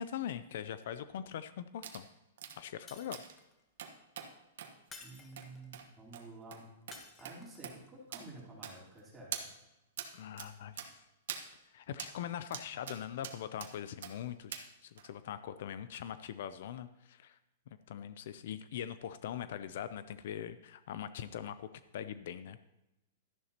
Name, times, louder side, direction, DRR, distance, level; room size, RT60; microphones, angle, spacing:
voice 1, 0.0-2.1 2.6-3.2 10.1-11.0 11.7-17.4 17.9-22.6, left 9 dB, 60° left, 13 dB, 0.5 m, -42 dB
sound 1, 1.8-2.0 2.4-2.6 3.1-3.3 3.8-4.3 4.6-4.7 5.4-5.5 5.7-5.8 6.1-6.2 6.5-6.6 6.9-7.0 7.2-7.4 7.6-7.8 8.1-8.2 8.6-9.0 9.3-9.5 10.0-10.1 10.4-10.5 10.8-10.9 11.3-11.4 12.0-12.1 12.5-13.0 13.2-13.7 14.0-14.1 14.5-14.6 15.0-15.1, right 8 dB, 70° right, 1.4 m, -43 dB
Shatter, 2.9-3.6 4.9-5.7 6.9-7.7, left 4 dB, 15° left, 1.1 m, -53 dB
voice 2, 5.0-6.7 7.2-9.5, right 2 dB, 10° right, -7 dB, 3.8 m, -51 dB
12.5 x 11.0 x 2.9 m, 0.96 s
hypercardioid pair, 160°, 0 cm